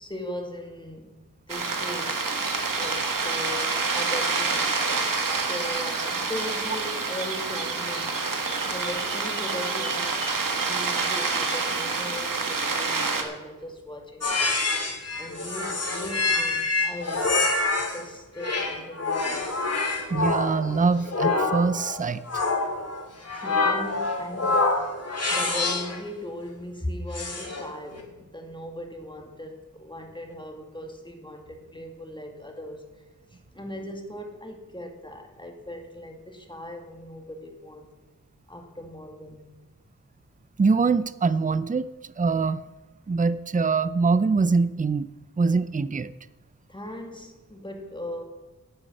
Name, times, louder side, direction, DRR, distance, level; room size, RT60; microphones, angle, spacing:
voice 1, 0.0-2.2 2.8-5.2 5.5-8.2 8.4-10.3 10.5-14.5 15.2-17.5 17.9-19.5 23.3-24.8 25.3-32.9 33.3-37.9 38.5-39.5 46.7-48.2, left 1 dB, 15° left, 3 dB, 2.1 m, -38 dB
sound 1, 1.5-13.2, right 4 dB, 85° right, 1.6 m, -27 dB
sound 2, 14.2-18.0 18.4-26.0 27.1-27.7, left 3 dB, 50° left, 2.4 m, -26 dB
voice 2, 20.1-22.4 40.6-41.9 42.2-42.6 43.1-45.1 45.4-46.1, right 4 dB, 25° right, 16 dB, 0.5 m, -23 dB
10.0 x 9.2 x 7.7 m, 1.2 s
wide cardioid pair, 85°, 32 cm